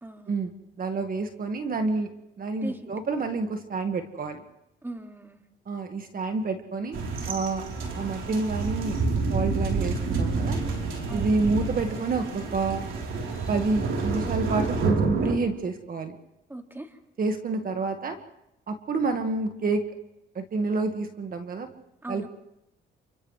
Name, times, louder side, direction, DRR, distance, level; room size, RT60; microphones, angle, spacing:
voice 1, 0.0-0.4 2.6-2.8 4.8-5.4 11.1-11.5 16.5-17.0 22.0-22.3, right 2 dB, 10° right, 4 dB, 2.2 m, -39 dB
voice 2, 0.8-2.1 2.4-4.4 5.7-7.6 8.0-9.0 9.3-10.6 11.1-12.9 13.5-16.1 17.2-18.2 18.7-19.8 20.3-21.7 22.1-22.3, right 3 dB, 45° right, 6 dB, 1.7 m, -28 dB
sound 1, 6.9-15.3, right 3 dB, 80° right, 3.7 m, -28 dB
29.5 x 27.0 x 3.3 m, 0.85 s
cardioid pair, 90°, 20 cm